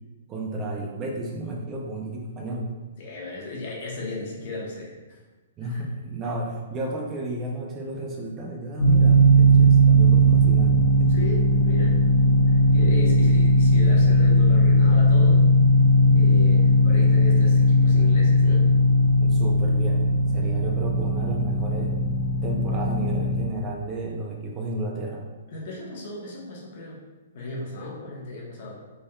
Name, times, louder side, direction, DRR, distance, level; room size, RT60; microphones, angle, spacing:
voice 1, 0.3-2.7 5.6-11.2 19.2-22.0 22.4-25.3, right 2 dB, 20° right, -1 dB, 0.4 m, -32 dB
voice 2, 3.0-5.2 5.6-5.9 11.1-12.0 12.5-15.4 16.1-18.6 25.5-27.0 27.3-28.8, left 2 dB, 45° left, -3 dB, 0.9 m, -35 dB
sound 1, 8.8-23.4, equal, 85° left, 0.5 m, -18 dB
4.2 x 3.5 x 2.2 m, 1.2 s
hypercardioid pair, 160°, 0 cm